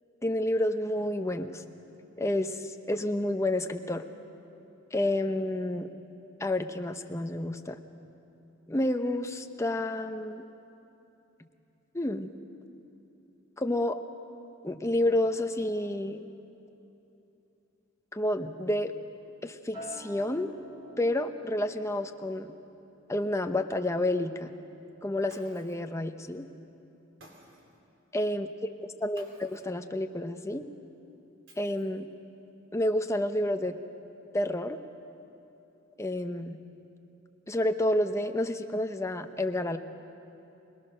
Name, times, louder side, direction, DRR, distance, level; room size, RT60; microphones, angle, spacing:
voice 1, 0.2-1.6 2.2-4.0 4.9-5.9 6.4-7.8 8.7-10.4 11.9-12.3 13.6-14.0 14.6-16.3 18.1-18.9 19.4-20.5 21.0-22.5 23.1-24.5 25.0-26.5 28.1-28.5 29.0-30.7 31.6-32.1 32.7-33.8 34.3-34.8 36.0-36.6 37.5-39.8, left 1 dB, 15° left, 7 dB, 0.8 m, -29 dB
Acoustic guitar, 19.7-24.2 24.5-24.9, right 1 dB, 20° right, 7.2 m, -49 dB
Shatter, 25.3-25.9 27.2-27.8 29.2-29.7 31.5-32.1, right 1 dB, 65° right, 3.8 m, -55 dB
26.0 x 19.5 x 6.4 m, 2.9 s
head